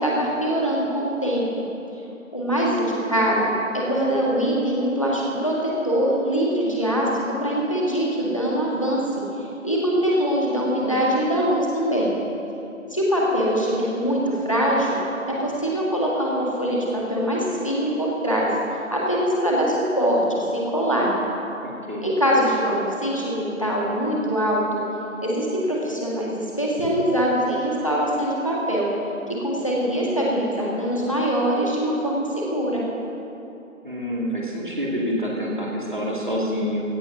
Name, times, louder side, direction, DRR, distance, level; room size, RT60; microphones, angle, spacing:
voice 1, 0.0-1.6 2.3-9.0 9.6-12.1 12.9-15.0 15.3-18.5 18.9-21.1 22.0-24.8 25.2-28.9 29.4-32.8, equal, 25° left, -4 dB, 1.7 m, -23 dB
voice 2, 21.6-22.1 33.8-36.8, equal, 35° right, -3 dB, 2.3 m, -27 dB
16.0 x 8.5 x 6.0 m, 2.8 s
figure-of-eight pair, 175°, 41 cm